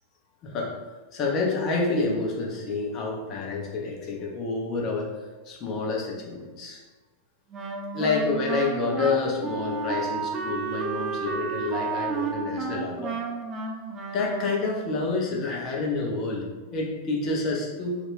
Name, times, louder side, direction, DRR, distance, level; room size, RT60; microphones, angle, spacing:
voice 1, 1.1-5.1 5.5-6.8 7.9-13.2 14.1-18.0, left 3 dB, 35° left, 0 dB, 0.5 m, -28 dB
Wind instrument woodwind instrument, 7.5-14.8, right 5 dB, 30° right, 0.3 m, -32 dB
2.4 x 2.0 x 3.5 m, 1.3 s
figure-of-eight pair, 90°, 0 cm